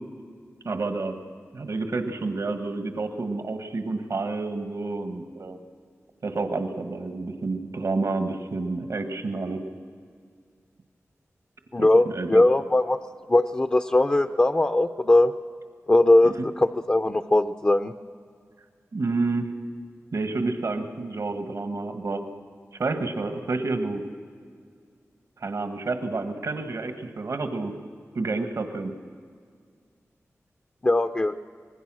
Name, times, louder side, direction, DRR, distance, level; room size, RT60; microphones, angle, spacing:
voice 1, 0.6-1.2 1.5-5.6 6.2-9.6 11.8-11.9 12.1-12.4 16.2-16.3 18.9-19.5 20.1-22.2 22.8-24.0 25.4-27.7 28.1-28.9, right 3 dB, 70° right, 7 dB, 1.5 m, -29 dB
voice 2, 11.7-13.0 13.3-15.3 15.9-17.9 30.8-31.4, left 2 dB, 25° left, 8 dB, 0.6 m, -20 dB
25.0 x 20.5 x 6.2 m, 2.1 s
wide cardioid pair, 110°, 5 cm